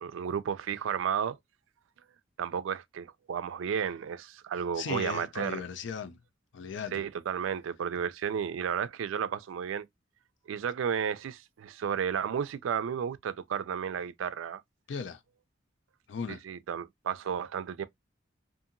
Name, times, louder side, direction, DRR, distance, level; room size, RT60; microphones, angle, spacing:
voice 1, 0.0-1.4 2.4-5.6 6.9-9.9 10.5-14.6 16.3-17.8, right 7 dB, 85° right, 0.3 m, -33 dB
voice 2, 4.8-6.2 6.5-7.0 14.9-15.2 16.1-16.4, left 6 dB, 70° left, 0.4 m, -37 dB
2.7 x 2.5 x 2.5 m
head